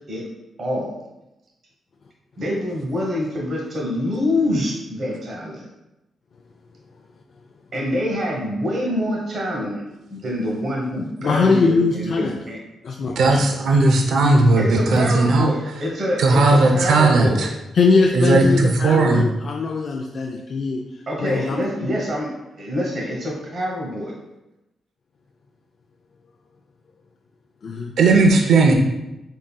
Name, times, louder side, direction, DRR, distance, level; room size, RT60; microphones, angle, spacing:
voice 1, 0.6-1.0 2.4-5.7 7.7-9.8 10.1-12.6 14.6-17.5 18.2-18.4 21.1-22.3 22.6-24.1, left 1 dB, 50° right, -3 dB, 1.1 m, -25 dB
voice 2, 11.2-12.4 12.8-13.8 17.7-21.6 27.6-27.9, left 4 dB, 55° left, 1 dB, 0.3 m, -21 dB
voice 3, 13.2-15.5 16.2-17.5 18.1-19.3 28.0-28.8, right 2 dB, 75° right, 2 dB, 0.4 m, -16 dB
3.7 x 3.7 x 2.3 m, 0.95 s
cardioid pair, 95°, 0 cm